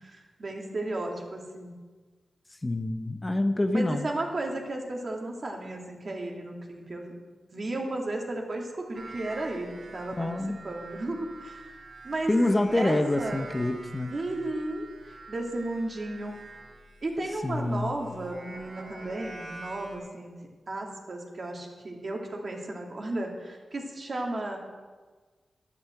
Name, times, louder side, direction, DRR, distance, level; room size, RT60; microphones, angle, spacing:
voice 1, 0.0-1.7 3.7-7.1 7.5-10.3 10.6-11.8 12.0-12.3 12.7-13.4 14.1-14.9 15.3-16.4 17.0-20.3 20.7-24.6, right 2 dB, 45° right, 0 dB, 2.6 m, -34 dB
voice 2, 2.6-4.1 10.2-10.6 12.3-14.1 17.4-18.0, left 1 dB, 20° left, 7 dB, 0.8 m, -26 dB
sound 1, 8.9-20.0, right 2 dB, 70° right, 2.9 m, -46 dB
11.5 x 8.7 x 7.8 m, 1.4 s
wide cardioid pair, 85°, 0 cm